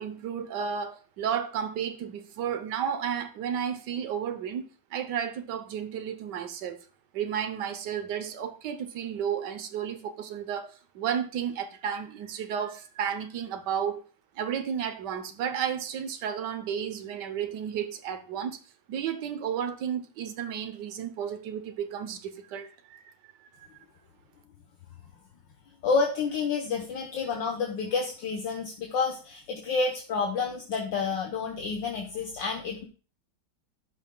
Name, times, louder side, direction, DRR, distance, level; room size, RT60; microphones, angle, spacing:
voice 1, 0.0-6.8 7.1-14.0 14.3-18.6 18.9-23.1, right 8 dB, 60° right, 1.4 m, -32 dB
voice 2, 25.8-32.8, left 4 dB, 65° left, 1.7 m, -29 dB
15.5 x 5.6 x 2.3 m
omnidirectional pair, 2.2 m